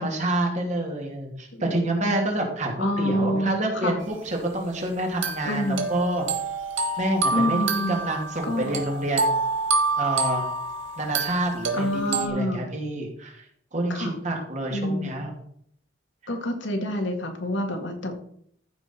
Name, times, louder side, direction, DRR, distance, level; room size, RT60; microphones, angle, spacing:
voice 1, 0.0-4.0 4.2-6.3 7.0-9.4 10.0-10.5 11.0-13.4 13.7-15.3, right 1 dB, 40° right, 0 dB, 2.7 m, -28 dB
voice 2, 2.8-4.0 5.4-5.9 7.3-8.0 8.4-8.8 11.7-12.7 13.9-14.2 14.7-15.1 16.3-18.1, left 1 dB, 70° left, 4 dB, 2.0 m, -27 dB
sound 1, 4.3-4.4 5.2-12.3, right 3 dB, 90° right, 1.7 m, -27 dB
14.0 x 6.1 x 4.5 m, 0.66 s
head